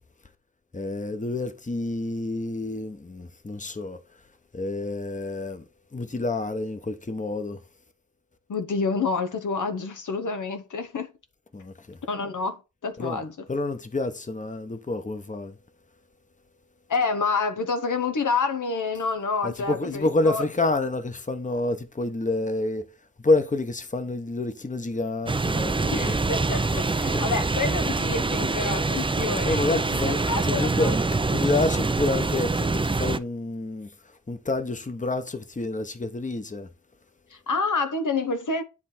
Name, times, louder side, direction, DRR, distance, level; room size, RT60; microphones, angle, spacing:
voice 1, 0.7-4.3 4.5-7.6 11.5-12.0 13.0-13.2 13.5-15.6 19.4-22.8 23.2-26.2 27.1-27.2 29.4-36.7, left 2 dB, 25° left, 0.9 m, -28 dB
voice 2, 8.5-11.1 12.1-13.3 16.9-20.4 25.9-29.6 29.9-30.9 37.3-38.6, left 4 dB, 90° left, 0.9 m, -28 dB
sound 1, 25.3-33.2, right 3 dB, 15° right, 0.4 m, -25 dB
9.8 x 3.3 x 4.2 m
wide cardioid pair, 100°, 30 cm